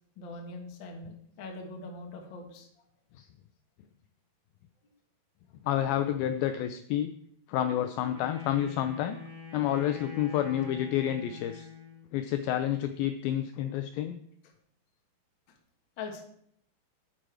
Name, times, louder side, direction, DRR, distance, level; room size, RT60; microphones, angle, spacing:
voice 1, 0.2-2.7 16.0-16.2, left 3 dB, 60° left, 1 dB, 1.2 m, -42 dB
voice 2, 5.6-7.1 7.5-9.2 9.5-11.7 12.1-14.2, left 11 dB, 90° left, 9 dB, 2.1 m, -29 dB
Wind instrument woodwind instrument, 8.1-12.1, left 5 dB, 40° right, 3.8 m, -45 dB
8.8 x 8.7 x 4.8 m, 0.68 s
omnidirectional pair, 4.8 m